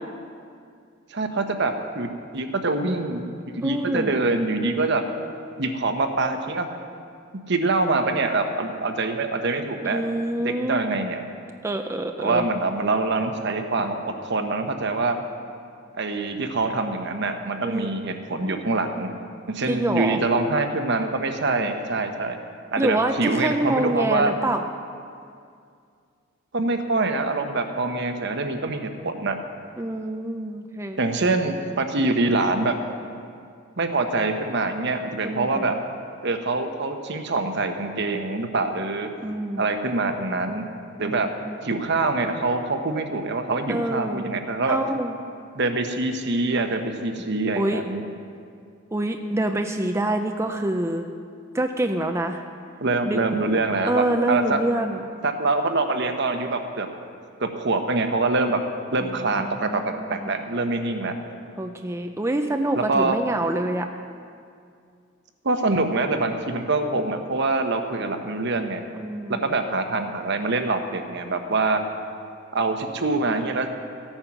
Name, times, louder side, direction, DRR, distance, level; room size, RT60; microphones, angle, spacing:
voice 1, 1.1-3.2 3.5-5.0 5.6-6.7 7.5-10.0 10.6-11.2 12.2-15.2 15.9-19.1 19.5-22.4 22.7-24.3 26.5-29.4 31.0-32.8 33.8-35.8 36.2-39.1 39.6-40.7 41.0-41.3 41.6-44.8 45.5-48.0 52.8-54.6 55.2-56.9 57.4-58.6 58.9-61.2 62.7-63.1 65.4-68.8 69.3-71.8 72.5-73.7, right 3 dB, 60° right, 6 dB, 1.0 m, -25 dB
voice 2, 3.6-4.1 9.8-10.9 11.6-12.5 17.6-18.2 19.7-20.2 22.8-24.6 29.8-31.0 35.2-35.7 39.2-39.7 41.0-41.6 43.7-44.2 44.7-45.2 47.6-47.8 48.9-51.1 51.5-52.4 53.1-53.2 53.9-55.0 59.0-60.3 61.6-63.9 68.9-69.5, right 1 dB, 15° right, 5 dB, 0.5 m, -26 dB
15.0 x 8.9 x 5.9 m, 2.3 s
head